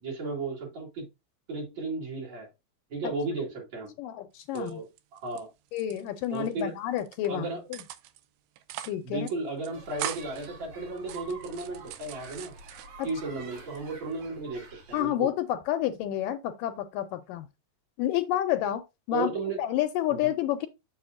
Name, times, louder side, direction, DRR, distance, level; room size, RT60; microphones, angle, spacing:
voice 1, 0.0-1.1 1.5-2.5 2.9-3.9 4.5-5.5 6.3-6.7 7.3-7.6 9.0-12.5 13.0-15.3 19.1-19.6 20.1-20.3, right 3 dB, 50° right, 3.5 m, -34 dB
voice 2, 4.0-4.7 5.7-7.8 8.9-9.3 13.0-13.1 14.9-17.5 18.0-18.8 19.1-19.3 19.6-20.7, left 12 dB, 80° left, 2.0 m, -29 dB
sound 1, 4.4-5.4 5.7-6.6 7.0-7.3 7.7-8.2 8.6-9.0 9.3-9.4 9.6-10.5 11.0-13.2 13.6-14.2, right 11 dB, 90° right, 2.6 m, -41 dB
sound 2, 9.7-15.0, right 3 dB, 70° right, 3.5 m, -47 dB
7.2 x 7.0 x 2.5 m
omnidirectional pair, 4.3 m